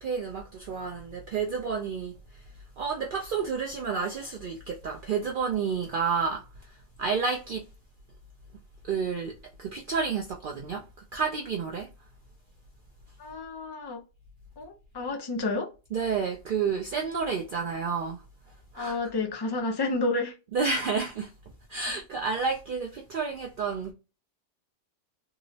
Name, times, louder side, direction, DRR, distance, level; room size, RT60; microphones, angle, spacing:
voice 1, 0.0-7.6 8.8-10.9 11.1-11.9 15.9-18.2 18.5-19.1 20.5-21.3 21.7-23.9, right 5 dB, 60° right, 0.6 m, -30 dB
voice 2, 13.2-14.0 14.6-15.7 18.8-20.3, left 3 dB, 35° left, 0.4 m, -30 dB
3.6 x 2.0 x 2.6 m
omnidirectional pair, 1.2 m